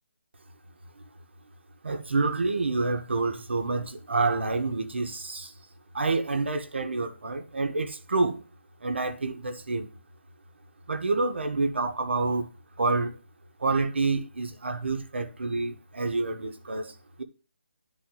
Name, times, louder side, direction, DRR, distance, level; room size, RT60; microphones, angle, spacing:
voice 1, 1.8-5.5 5.9-8.4 8.8-9.9 10.9-12.5 12.8-13.2 13.6-17.2, right 3 dB, 65° right, 1.5 m, -28 dB
11.0 x 4.1 x 5.5 m
hypercardioid pair, 180°, 7 cm